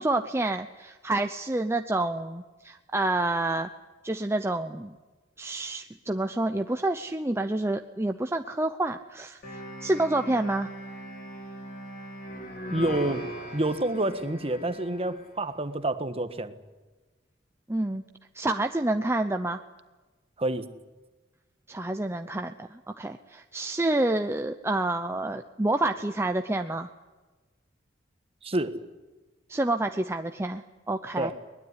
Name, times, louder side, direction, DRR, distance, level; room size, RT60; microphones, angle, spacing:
voice 1, 0.0-3.7 4.0-5.0 5.4-10.7 17.7-18.0 18.3-19.6 21.7-26.9 29.5-31.3, right 2 dB, 15° right, 6 dB, 0.8 m, -28 dB
sound 1, 9.4-15.4, equal, 50° left, 5.1 m, -40 dB
voice 2, 12.7-16.5 20.4-20.7 28.4-28.8 31.2-31.3, right 2 dB, 30° right, 10 dB, 1.5 m, -28 dB
22.5 x 20.5 x 9.8 m, 1.2 s
head